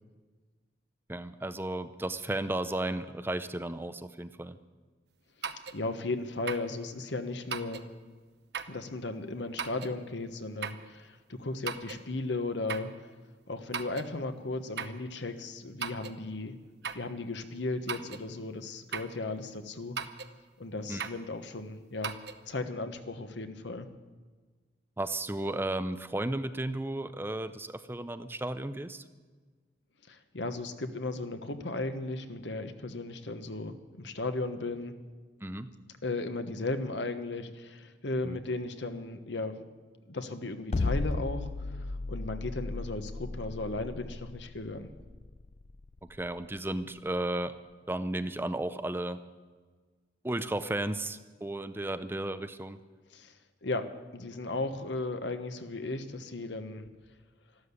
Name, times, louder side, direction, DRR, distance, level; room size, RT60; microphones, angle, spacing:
voice 1, 1.1-4.6 20.9-21.1 25.0-29.0 35.4-35.7 38.2-38.4 46.1-47.5 47.9-49.2 50.2-52.8, right 1 dB, 10° right, 11 dB, 0.6 m, -34 dB
sound 1, 5.4-5.8 6.5-6.7 7.5-7.9 8.5-8.8 9.6-10.0 10.6-10.9 11.7-12.0 12.7-12.9 13.7-14.1 14.8-15.0 15.8-16.2 16.8-17.1 17.9-18.3 18.9-19.2 20.0-20.3 21.0-21.2 22.0-22.4, right 6 dB, 65° right, 0.9 m, -37 dB
voice 2, 5.7-7.9 8.7-12.9 13.5-16.5 16.9-20.0 20.6-22.2 22.5-23.9 30.1-34.9 36.0-39.6 40.1-44.9 53.1-53.3 53.6-53.9 54.1-56.9, left 2 dB, 80° left, 8 dB, 1.3 m, -36 dB
sound 2, 40.7-46.9, left 3 dB, 35° left, 0.5 m, -35 dB
13.0 x 12.5 x 8.3 m, 1.4 s
head